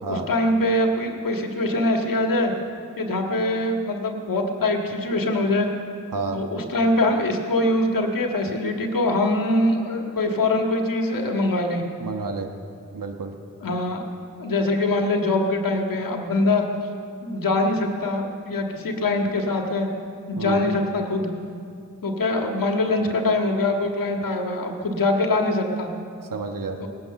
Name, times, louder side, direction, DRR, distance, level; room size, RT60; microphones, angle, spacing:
voice 1, 0.1-2.5 3.0-5.7 6.3-11.8 13.6-14.0 14.4-16.6 17.2-19.9 20.3-21.3 22.0-25.9 26.8-26.9, left 2 dB, 85° left, 2 dB, 1.8 m, -23 dB
voice 2, 12.0-12.5 12.9-13.3 20.4-20.6 26.3-26.8, right 4 dB, 75° right, 4 dB, 1.3 m, -30 dB
19.5 x 9.1 x 7.0 m, 2.4 s
cardioid pair, 45°, 33 cm